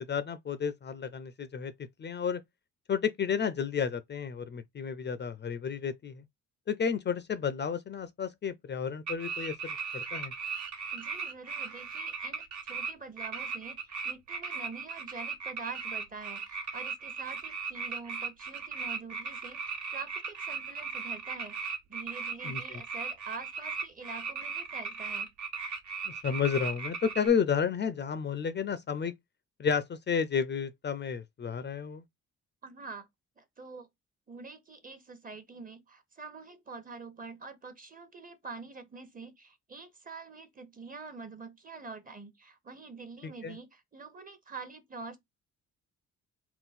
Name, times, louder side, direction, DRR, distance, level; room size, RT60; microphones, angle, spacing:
voice 1, 0.1-1.7 2.0-2.4 2.9-6.2 6.7-10.3 22.4-22.8 26.1-29.1 29.6-32.0 43.4-43.6, left 6 dB, 35° left, 0.5 m, -31 dB
sound 1, 9.1-12.9 13.2-27.3, right 5 dB, 70° right, 1.3 m, -37 dB
voice 2, 10.9-25.3 32.6-33.1 33.4-33.9 34.3-45.2, right 4 dB, 30° right, 0.9 m, -46 dB
3.8 x 2.2 x 4.1 m
cardioid pair, 90°, 30 cm